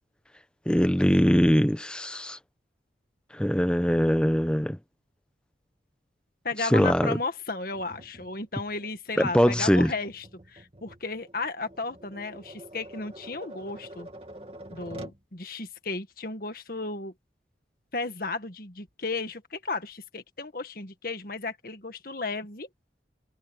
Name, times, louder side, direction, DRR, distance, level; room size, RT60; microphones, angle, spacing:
voice 1, 0.7-2.4 3.3-4.8 6.7-7.2 9.2-9.9, equal, 5° left, 1.0 m, -22 dB
voice 2, 6.4-14.1 14.7-17.1 17.9-22.7, left 3 dB, 50° left, 1.8 m, -34 dB
Tap, 7.7-15.2, right 1 dB, 30° right, 2.8 m, -47 dB
head